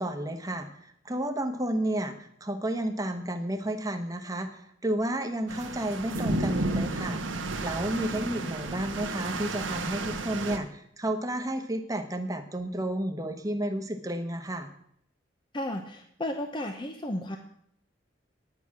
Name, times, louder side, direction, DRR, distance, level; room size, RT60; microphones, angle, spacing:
voice 1, 0.0-7.2 7.6-14.7, right 1 dB, 15° right, 6 dB, 1.1 m, -31 dB
sound 1, 5.5-10.6, right 2 dB, 80° right, 1.2 m, -32 dB
voice 2, 15.5-17.4, left 1 dB, 25° left, 5 dB, 0.7 m, -33 dB
9.9 x 9.6 x 6.1 m, 0.69 s
head